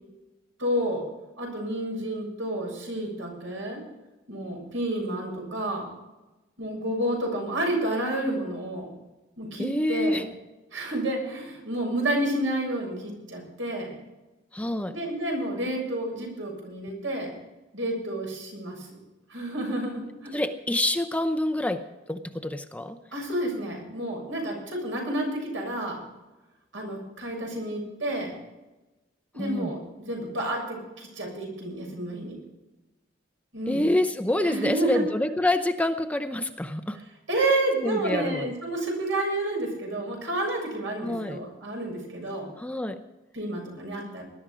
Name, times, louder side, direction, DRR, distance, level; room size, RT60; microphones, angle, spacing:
voice 1, 0.6-1.0 1.4-3.8 4.3-5.9 6.6-8.9 9.4-10.2 10.7-14.0 14.9-17.3 17.7-18.9 19.3-20.4 23.1-26.0 26.7-28.3 29.3-32.4 33.5-33.9 34.4-35.0 37.3-42.5 43.3-44.2, right 1 dB, 75° right, 0 dB, 7.2 m, -30 dB
voice 2, 9.6-10.2 14.5-15.0 20.3-23.0 29.4-29.7 33.7-37.0 37.8-38.6 41.0-41.4 42.6-43.0, left 1 dB, 5° left, 8 dB, 0.7 m, -27 dB
20.0 x 12.0 x 5.1 m, 1.0 s
head